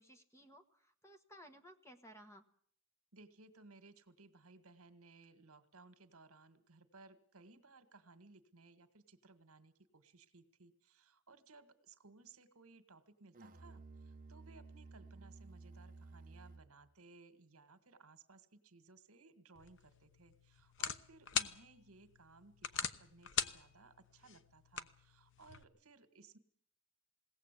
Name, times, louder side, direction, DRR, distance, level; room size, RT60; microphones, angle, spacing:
voice 1, 0.0-2.4, equal, 15° left, 7 dB, 1.4 m, -58 dB
voice 2, 3.1-26.4, right 3 dB, 75° right, 10 dB, 1.9 m, -61 dB
Musical instrument, 13.3-16.9, right 3 dB, 40° right, 0.9 m, -55 dB
sound 1, 19.6-25.6, left 8 dB, 60° left, 1.0 m, -43 dB
21.5 x 17.5 x 8.3 m, 0.62 s
head